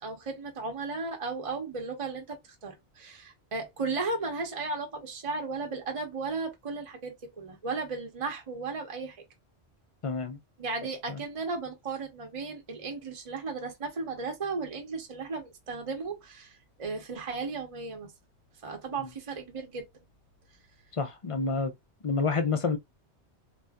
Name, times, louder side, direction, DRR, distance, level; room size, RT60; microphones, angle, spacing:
voice 1, 0.0-9.2 10.6-18.1 18.6-19.9, right 4 dB, 35° right, 0.8 m, -35 dB
voice 2, 10.0-10.4 11.1-11.2 20.9-21.7 22.0-22.8, left 4 dB, 45° left, 0.4 m, -28 dB
2.6 x 2.5 x 3.5 m
omnidirectional pair, 1.2 m